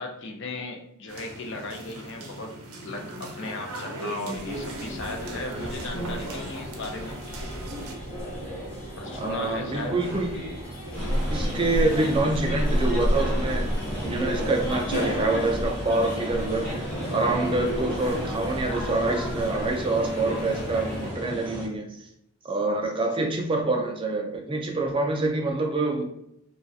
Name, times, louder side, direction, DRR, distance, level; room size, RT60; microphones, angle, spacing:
voice 1, 0.0-2.6 2.8-7.2 9.0-9.9, left 2 dB, 55° left, 3 dB, 0.5 m, -36 dB
sound 1, 1.1-8.0, right 1 dB, 75° right, 0.6 m, -38 dB
sound 2, 4.3-21.1, equal, 30° left, 1.0 m, -31 dB
voice 2, 9.2-10.3 11.3-13.7 14.0-16.7 17.1-22.1 22.4-26.0, right 2 dB, 25° right, 1 dB, 0.3 m, -26 dB
sound 3, 10.9-21.7, left 1 dB, 5° left, 0.7 m, -35 dB
3.1 x 2.3 x 2.6 m, 0.77 s
head